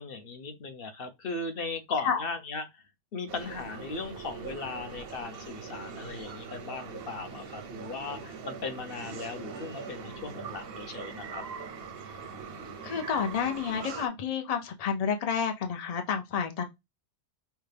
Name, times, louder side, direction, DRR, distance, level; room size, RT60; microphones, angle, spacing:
voice 1, 0.0-2.7 3.1-11.4, left 3 dB, 50° left, 0.7 m, -37 dB
sound 1, 3.3-14.1, right 5 dB, 55° right, 0.7 m, -42 dB
voice 2, 12.8-16.6, left 7 dB, 80° left, 0.3 m, -30 dB
5.5 x 2.2 x 3.3 m
omnidirectional pair, 1.6 m